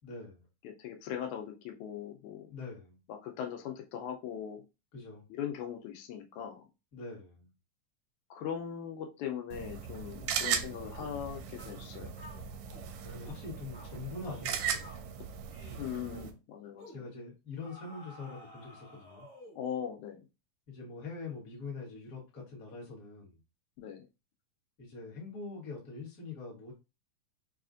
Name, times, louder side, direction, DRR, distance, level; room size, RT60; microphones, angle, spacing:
voice 1, 0.0-0.4 2.5-3.0 4.9-5.2 6.9-7.5 13.0-15.0 16.9-19.3 20.7-23.4 24.8-26.7, left 4 dB, 45° left, -2 dB, 1.3 m, -44 dB
voice 2, 0.6-2.5 3.1-4.6 5.4-6.7 8.3-12.4 15.8-16.9 19.6-20.2 23.8-24.0, left 9 dB, 85° left, 3 dB, 2.0 m, -40 dB
sound 1, 9.5-16.3, right 7 dB, 80° right, 1.6 m, -38 dB
sound 2, 11.0-11.2 11.6-11.8 12.2-12.9 13.2-13.4 13.7-13.9 14.2-14.5 14.8-15.1 15.5-15.8 16.1-16.4 16.8-17.0 17.6-19.7, left 1 dB, 10° right, 0.5 m, -53 dB
4.9 x 2.4 x 2.5 m, 0.26 s
omnidirectional pair, 3.4 m